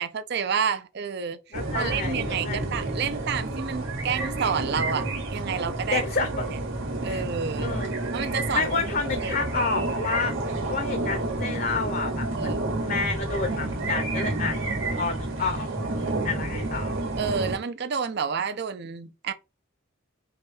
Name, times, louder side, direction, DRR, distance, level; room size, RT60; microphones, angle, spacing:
voice 1, 0.0-1.4 1.7-6.0 7.0-7.7 8.1-8.8 9.2-9.4 12.3-12.7 17.2-19.3, right 6 dB, 55° right, 0.5 m, -29 dB
voice 2, 1.5-2.6 5.9-6.6 7.0-7.2 7.6-7.9 8.5-10.3 10.7-12.5 12.8-14.6 14.9-15.7 15.9-17.0, left 4 dB, 45° left, 0.6 m, -29 dB
sound 1, 1.5-17.6, right 2 dB, 80° right, 1.6 m, -30 dB
4.9 x 2.3 x 4.2 m
head